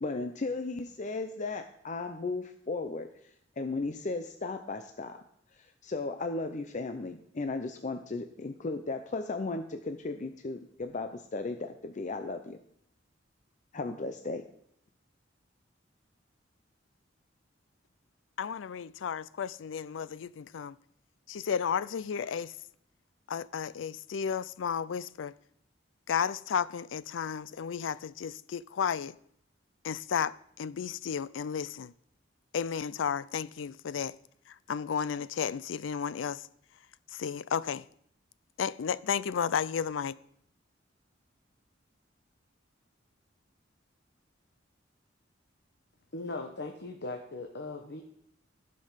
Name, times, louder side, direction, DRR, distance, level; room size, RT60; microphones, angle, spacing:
voice 1, 0.0-3.3 3.6-5.2 5.6-12.6 13.7-14.4, left 3 dB, 40° left, 0.6 m, -35 dB
voice 2, 18.4-20.8 21.3-22.5 23.3-25.3 26.1-29.1 29.8-31.9 32.5-34.1 34.7-36.4 37.1-37.8 38.6-40.1, left 7 dB, 85° left, 0.4 m, -33 dB
voice 3, 46.1-48.0, left 2 dB, 65° left, 1.1 m, -39 dB
15.0 x 5.4 x 5.7 m
head